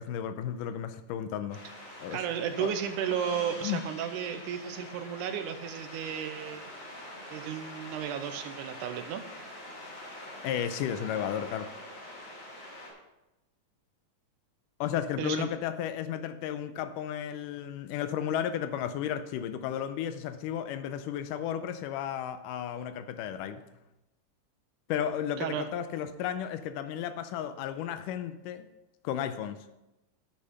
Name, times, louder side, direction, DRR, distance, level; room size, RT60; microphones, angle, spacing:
voice 1, 0.0-1.6 2.0-2.2 2.6-2.7 3.6-3.8 10.4-11.7 14.8-23.6 24.9-28.7 29.0-29.6, left 9 dB, 85° left, 2.1 m, -33 dB
sound 1, 1.5-12.9, left 1 dB, 45° left, 3.3 m, -45 dB
voice 2, 2.1-6.6 7.3-9.2 15.2-15.5 25.4-25.7, right 9 dB, 80° right, 2.1 m, -33 dB
Gong, 3.1-7.8, left 3 dB, 65° left, 2.4 m, -52 dB
10.0 x 6.3 x 5.4 m
omnidirectional pair, 3.8 m